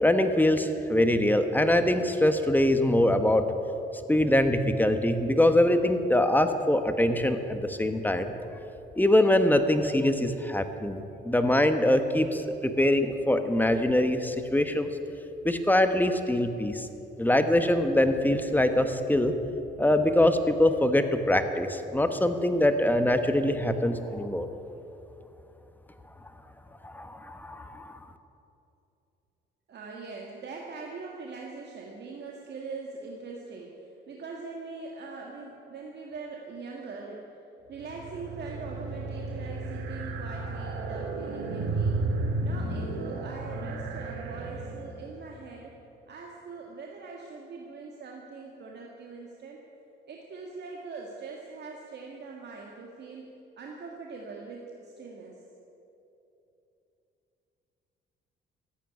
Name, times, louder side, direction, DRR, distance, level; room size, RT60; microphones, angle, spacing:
voice 1, 0.0-3.5 4.1-8.3 9.0-14.9 15.4-16.9 17.2-19.3 19.8-24.5 26.8-28.0, left 1 dB, 10° left, 8 dB, 1.2 m, -23 dB
voice 2, 29.7-33.8 34.1-37.3 37.7-42.0 42.4-45.7 46.1-49.6 50.1-53.3 53.6-55.4, right 4 dB, 60° right, -1 dB, 1.8 m, -42 dB
sound 1, 37.7-45.2, right 3 dB, 85° right, 1.7 m, -33 dB
14.5 x 9.2 x 9.9 m, 2.9 s
cardioid pair, 90°, 20 cm